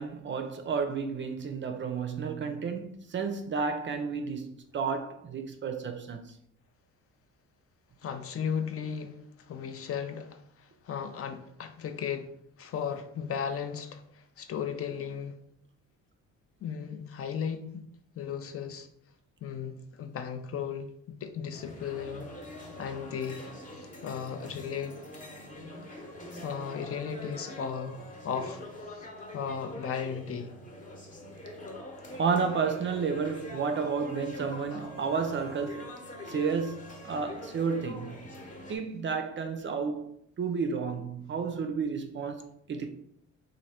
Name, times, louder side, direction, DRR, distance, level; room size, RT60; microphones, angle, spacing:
voice 1, 0.0-6.2 32.1-35.9 36.3-38.3 38.7-40.1 40.4-42.9, right 5 dB, 40° right, 0.4 m, -31 dB
voice 2, 8.0-12.3 12.6-15.4 16.6-17.8 18.2-18.9 19.4-22.3 22.8-24.9 25.9-26.1 26.4-28.6 28.9-29.1 29.3-30.5, left 7 dB, 50° left, 0.5 m, -36 dB
sound 1, 21.5-38.8, left 1 dB, 25° left, 1.0 m, -44 dB
sound 2, 22.2-28.7 29.0-29.1 32.2-37.3, right 1 dB, 85° left, 1.1 m, -51 dB
3.0 x 2.6 x 4.2 m
cardioid pair, 90°, 30 cm